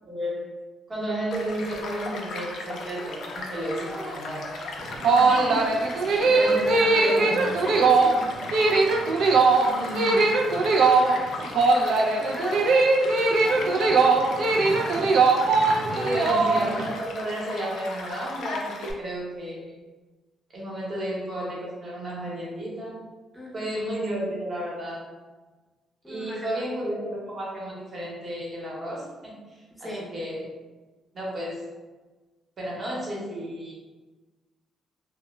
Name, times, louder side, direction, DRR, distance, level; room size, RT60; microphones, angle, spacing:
voice 1, 0.1-0.4 0.9-4.4 5.1-5.8 6.2-7.7 9.6-10.3 16.1-19.7 20.5-23.0 23.5-25.1 26.1-30.5 31.1-31.6 32.6-33.7, right 1 dB, 40° right, -5 dB, 0.9 m, -32 dB
Child speech kid speaking / Stream / Car passing by, 1.3-18.9, left 3 dB, 70° left, 0.4 m, -37 dB
voice 2, 3.5-4.2 6.0-8.3 10.9-11.3 12.1-12.9 13.4-15.1 15.9-16.3 23.3-23.7 26.0-26.6 29.8-30.1, equal, ahead, -5 dB, 0.6 m, -36 dB
sound 1, 4.8-16.9, right 3 dB, 70° right, 0.3 m, -20 dB
2.1 x 2.1 x 3.0 m, 1.2 s
cardioid pair, 90°, 0 cm